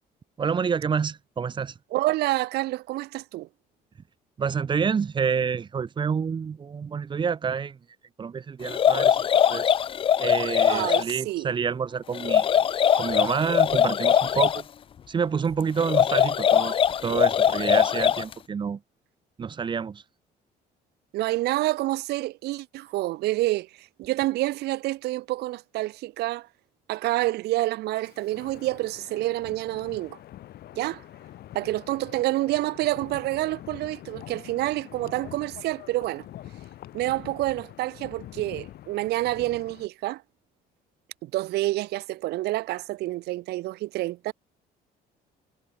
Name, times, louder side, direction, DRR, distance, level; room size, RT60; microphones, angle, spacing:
voice 1, 0.4-1.7 4.4-7.8 8.2-9.7 10.2-12.5 13.0-14.7 15.1-18.8 19.4-20.0, right 6 dB, 30° right, 0.7 m, -28 dB
voice 2, 1.9-3.5 10.7-11.5 21.1-26.5 26.9-30.2 30.7-31.0 31.5-36.3 36.9-40.2 41.2-44.3, right 18 dB, 75° right, 0.6 m, -28 dB
sound 1, 8.6-11.1 12.1-14.6 15.8-18.3, left 8 dB, 30° left, 0.4 m, -21 dB
Wind, 28.0-39.9, left 13 dB, 70° left, 4.6 m, -45 dB
cardioid pair, 110°, 17 cm